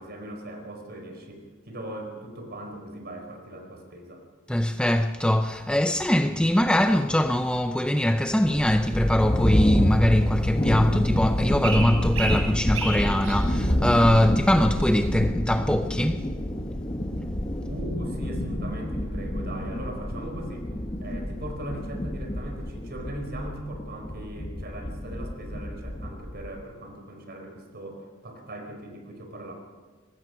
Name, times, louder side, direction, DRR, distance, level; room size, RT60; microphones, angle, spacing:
voice 1, 0.0-4.2 17.7-20.7 21.0-29.5, right 1 dB, 50° right, 4.8 m, -39 dB
voice 2, 4.5-16.3, left 1 dB, 5° left, 0.5 m, -22 dB
sound 1, 5.2-23.0, equal, 55° left, 5.6 m, -37 dB
sound 2, 8.6-26.6, left 1 dB, 20° left, 1.2 m, -28 dB
sound 3, 8.8-15.1, right 3 dB, 75° right, 5.7 m, -37 dB
23.0 x 19.5 x 6.1 m
head